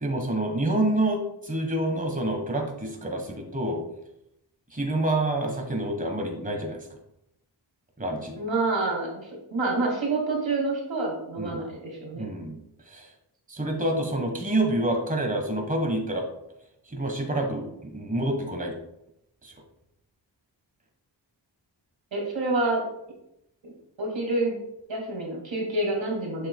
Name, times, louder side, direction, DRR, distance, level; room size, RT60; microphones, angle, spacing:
voice 1, 0.0-3.8 4.7-6.9 8.0-8.4 11.4-11.6 12.1-12.6 12.9-13.1 13.5-16.3 16.9-18.7 19.4-19.5, right 1 dB, 20° right, 2 dB, 1.3 m, -27 dB
voice 2, 8.4-12.3 22.1-22.8 23.6-23.7 24.0-24.6 24.9-26.5, right 2 dB, 75° right, 0 dB, 2.1 m, -28 dB
7.6 x 6.5 x 2.2 m, 0.81 s
wide cardioid pair, 65°, 45 cm